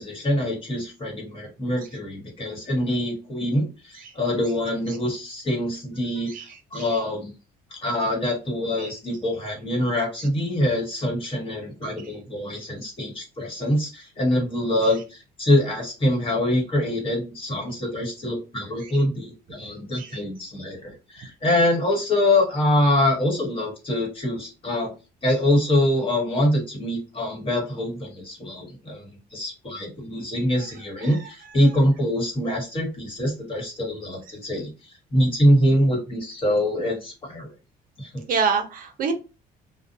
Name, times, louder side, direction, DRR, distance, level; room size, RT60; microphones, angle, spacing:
voice 1, 0.0-7.3 7.7-24.9 25.2-29.0 29.3-37.5 38.0-38.1, left 1 dB, 30° left, -1 dB, 1.3 m, -24 dB
voice 2, 38.3-39.1, right 5 dB, 55° right, 6 dB, 0.6 m, -25 dB
2.5 x 2.1 x 2.6 m, 0.31 s
cardioid pair, 110°, 17 cm